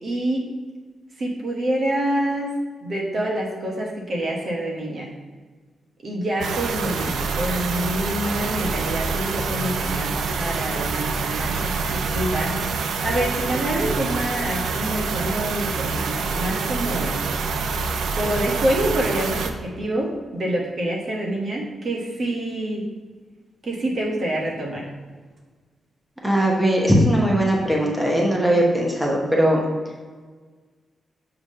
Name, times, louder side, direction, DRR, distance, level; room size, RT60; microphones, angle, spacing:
voice 1, 0.0-0.4 1.2-2.5 2.8-5.1 6.0-12.5 13.0-17.1 18.1-22.8 23.6-24.9, right 1 dB, 45° right, -1 dB, 1.1 m, -26 dB
sound 1, 6.4-19.5, right 4 dB, 90° right, 0.5 m, -26 dB
voice 2, 26.2-29.6, equal, 5° right, -2 dB, 1.1 m, -19 dB
7.2 x 3.4 x 5.4 m, 1.4 s
wide cardioid pair, 150°, 0 cm